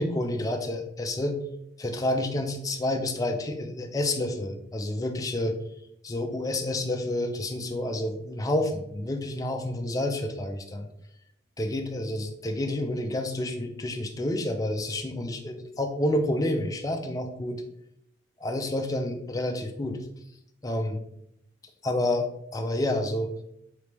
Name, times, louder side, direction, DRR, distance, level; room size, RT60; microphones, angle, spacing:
voice 1, 0.0-1.4 1.8-5.6 6.0-10.9 11.6-17.6 18.4-20.0 20.6-21.0 21.8-22.3 22.5-23.3, left 1 dB, 20° left, 4 dB, 0.4 m, -29 dB
3.9 x 3.1 x 3.3 m, 0.76 s
head